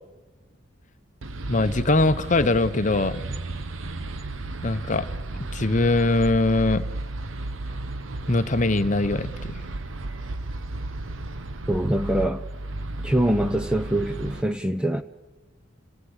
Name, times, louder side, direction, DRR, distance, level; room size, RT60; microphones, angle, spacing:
sound 1, 1.2-14.4, right 2 dB, 75° right, 1.0 m, -33 dB
voice 1, 1.5-3.2 4.6-5.1 5.5-6.8 8.3-9.6, left 2 dB, 40° left, 0.9 m, -22 dB
voice 2, 11.7-12.5 13.0-15.0, right 1 dB, 5° right, 0.7 m, -24 dB
26.0 x 18.0 x 8.0 m
head